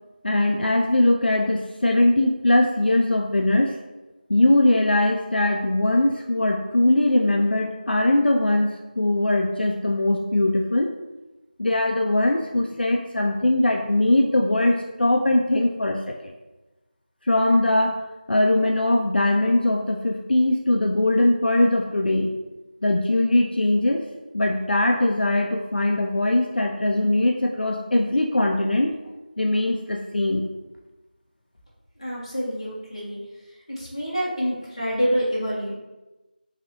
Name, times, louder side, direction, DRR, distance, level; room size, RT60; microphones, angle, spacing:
voice 1, 0.2-3.8 4.3-10.9 11.6-16.1 17.3-18.0 18.3-22.4 22.8-24.0 24.3-28.9 29.4-30.5, left 1 dB, 75° left, 1 dB, 0.3 m, -21 dB
voice 2, 32.0-33.2 33.8-35.7, equal, 35° left, -7 dB, 0.9 m, -26 dB
3.1 x 2.6 x 2.8 m, 1.1 s
figure-of-eight pair, 175°, 5 cm